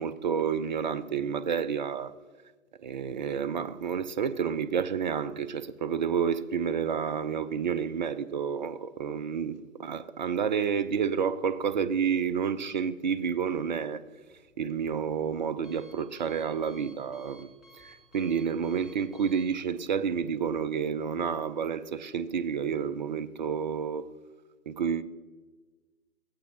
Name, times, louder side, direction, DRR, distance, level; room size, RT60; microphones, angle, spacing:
voice 1, 0.0-2.1 2.8-14.0 14.6-17.5 17.7-24.0 24.7-25.0, right 7 dB, 35° right, 0.5 m, -30 dB
Alarm, 14.2-20.6, equal, ahead, 1.8 m, -58 dB
21.5 x 15.5 x 2.8 m
figure-of-eight pair, 125°, 41 cm